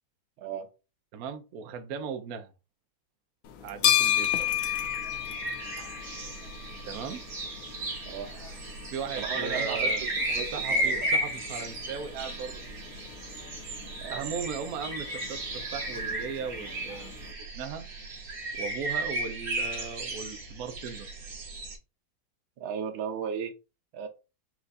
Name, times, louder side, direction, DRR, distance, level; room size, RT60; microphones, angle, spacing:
voice 1, 1.1-2.5 3.6-4.5 6.9-7.2 8.9-12.8 14.1-17.9 18.5-21.1, right 6 dB, 70° right, 0.9 m, -38 dB
sound 1, 3.5-17.3, left 11 dB, 85° left, 1.4 m, -34 dB
sound 2, 4.0-21.8, right 2 dB, 50° right, 1.6 m, -34 dB
voice 2, 9.2-9.9 10.3-11.1 14.0-14.3 22.6-23.5 23.9-24.1, right 7 dB, 85° right, 1.6 m, -35 dB
4.5 x 2.4 x 4.0 m
omnidirectional pair, 2.1 m